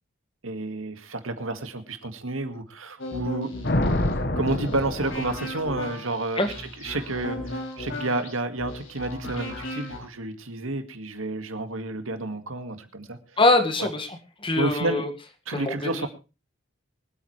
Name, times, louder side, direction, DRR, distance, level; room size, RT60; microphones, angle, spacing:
voice 1, 0.4-3.5 4.4-6.4 6.8-13.2 13.8-13.9 14.6-15.0 15.5-16.1, right 2 dB, 70° right, 9 dB, 1.9 m, -30 dB
sound 1, 3.0-10.0, left 1 dB, 65° left, 4.9 m, -36 dB
Thunder, 3.6-5.8, left 1 dB, 50° left, 1.5 m, -27 dB
voice 2, 13.4-15.1 15.5-16.1, left 2 dB, 25° left, 7 dB, 1.8 m, -23 dB
24.5 x 9.1 x 3.3 m, 0.30 s
head